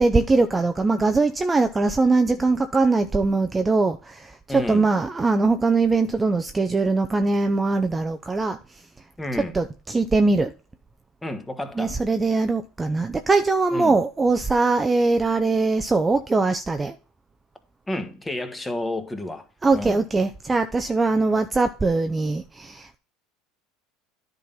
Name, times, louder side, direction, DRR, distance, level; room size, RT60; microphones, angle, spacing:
voice 1, 0.0-8.8 9.5-10.5 11.8-17.0 19.6-23.0, right 3 dB, 15° right, 0.6 m, -21 dB
voice 2, 4.5-4.9 9.2-9.5 11.2-11.9 13.7-14.0 17.9-19.5 19.7-20.0, left 1 dB, 10° left, 1.6 m, -30 dB
10.0 x 3.8 x 5.6 m
supercardioid pair, 95°, 0 cm